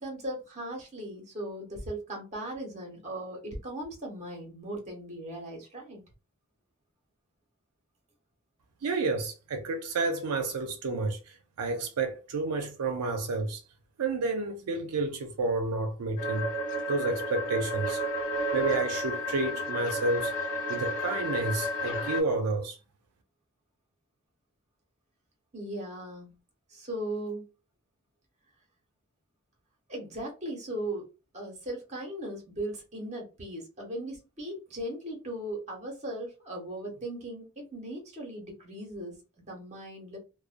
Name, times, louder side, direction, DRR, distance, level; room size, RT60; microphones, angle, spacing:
voice 1, 0.0-6.0 25.5-26.4 26.7-27.5 29.9-31.1 31.3-40.2, right 1 dB, 30° right, 1.0 m, -38 dB
voice 2, 8.8-13.6 14.0-16.5 16.9-18.0 18.5-20.3 20.7-22.8, right 3 dB, 85° right, 0.4 m, -30 dB
sound 1, 16.2-22.2, equal, 35° left, 0.8 m, -32 dB
2.5 x 2.1 x 2.4 m
head